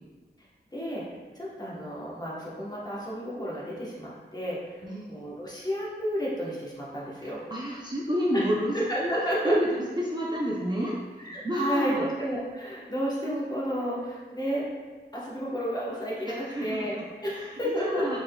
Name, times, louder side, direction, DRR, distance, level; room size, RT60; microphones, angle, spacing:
voice 1, 0.7-1.1 1.3-4.8 5.1-7.4 8.3-8.5 8.7-9.6 11.2-14.7 15.1-18.1, equal, 20° left, -6 dB, 1.1 m, -31 dB
voice 2, 4.8-5.2 7.2-9.1 9.4-9.7 10.0-12.1 16.3-18.2, equal, 20° right, -5 dB, 0.5 m, -30 dB
4.3 x 3.6 x 2.3 m, 1.5 s
wide cardioid pair, 90°, 19 cm